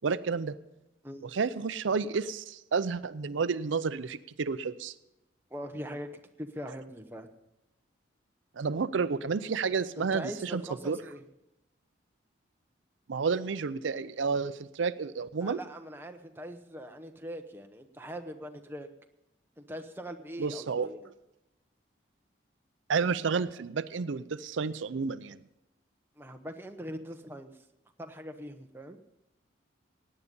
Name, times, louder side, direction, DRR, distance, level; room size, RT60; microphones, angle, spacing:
voice 1, 0.0-0.5 1.2-4.9 8.6-11.0 13.1-15.6 20.4-20.9 22.9-25.4, right 5 dB, 80° right, 14 dB, 0.5 m, -31 dB
voice 2, 5.5-6.1 6.4-7.3 10.0-11.2 15.4-18.9 19.6-21.1 26.2-27.5 28.0-29.0, equal, 10° right, 5 dB, 0.8 m, -41 dB
16.5 x 9.8 x 5.3 m, 0.91 s
head